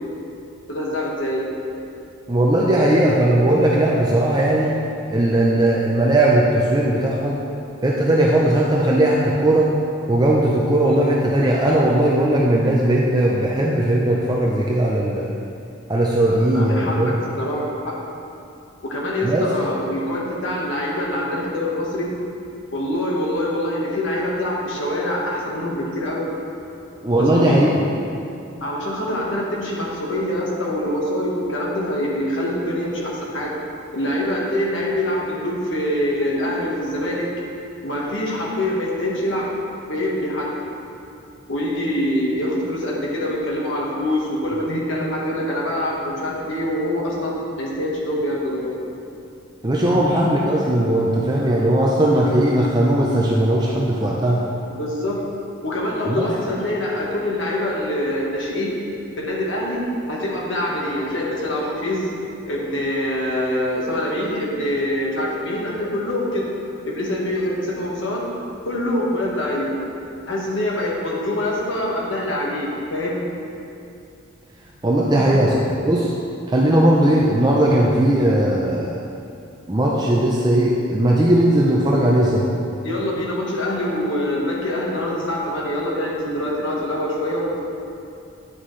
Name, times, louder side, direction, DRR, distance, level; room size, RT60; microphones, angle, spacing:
voice 1, 0.7-1.4 16.3-17.9 18.8-22.1 22.7-26.3 27.2-27.7 28.6-33.5 33.9-37.3 37.8-39.5 39.9-40.5 41.5-48.8 49.8-50.0 54.7-55.2 55.6-58.8 59.2-59.8 60.1-62.1 62.5-66.5 66.8-68.3 68.6-69.8 70.3-73.2 75.0-75.6 82.8-87.6, left 1 dB, 65° left, -4 dB, 1.4 m, -25 dB
voice 2, 2.3-4.7 5.1-7.4 7.8-9.7 10.1-15.4 15.9-17.2 19.2-19.5 27.0-27.7 49.6-54.4 56.1-56.3 74.8-75.6 75.8-76.1 76.5-79.0 79.7-82.5, right 1 dB, 20° right, -3 dB, 0.5 m, -18 dB
9.2 x 6.3 x 3.2 m, 2.6 s
head